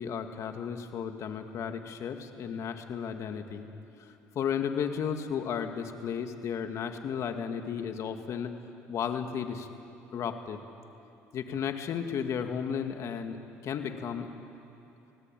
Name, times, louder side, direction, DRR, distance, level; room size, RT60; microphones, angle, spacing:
voice 1, 0.0-3.7 4.4-8.5 8.9-9.7 10.1-10.6 11.3-13.4 13.6-14.3, left 7 dB, 55° left, 6 dB, 2.2 m, -34 dB
28.5 x 19.0 x 9.2 m, 2.8 s
supercardioid pair, 80°, 6 cm